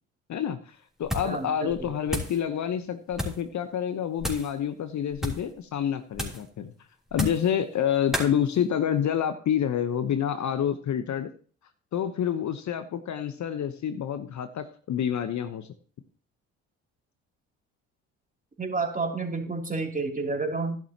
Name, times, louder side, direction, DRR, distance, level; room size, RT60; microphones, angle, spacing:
voice 1, 0.3-6.7 7.1-11.3 11.9-15.7, left 9 dB, 45° left, 10 dB, 1.0 m, -28 dB
sound 1, 1.0-1.4 1.7-2.4 3.1-3.5 4.2-4.5 5.1-5.5 6.1-6.5 7.1-7.5 8.1-8.3, left 1 dB, ahead, 3.3 m, -32 dB
voice 2, 1.2-1.9 18.6-20.8, right 3 dB, 20° right, 2 dB, 3.1 m, -30 dB
12.0 x 11.5 x 2.9 m, 0.42 s
hypercardioid pair, 50°, 39 cm